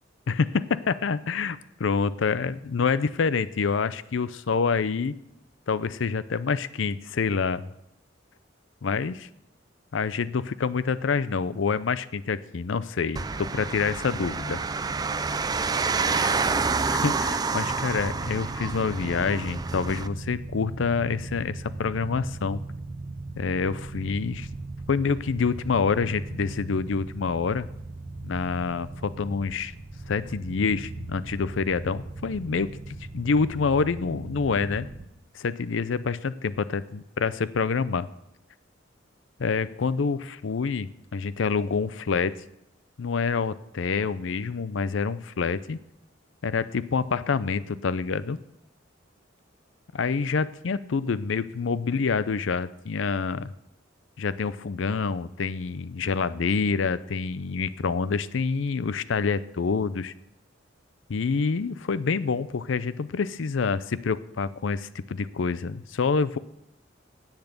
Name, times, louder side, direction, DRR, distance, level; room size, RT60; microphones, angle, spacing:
voice 1, 0.3-5.2 5.7-7.6 8.8-9.3 9.9-14.6 16.2-16.3 16.9-22.6 23.4-24.5 24.9-27.7 28.2-29.7 30.1-34.9 35.3-38.1 39.4-42.4 43.0-45.8 46.4-48.4 49.9-53.5 54.2-60.1 61.1-66.4, left 5 dB, 75° left, 16 dB, 0.5 m, -27 dB
sound 1, 13.2-20.1, right 4 dB, 20° right, 0.3 m, -28 dB
sound 2, 17.6-35.1, right 2 dB, 45° right, 0.9 m, -38 dB
10.5 x 8.2 x 6.7 m, 0.83 s
head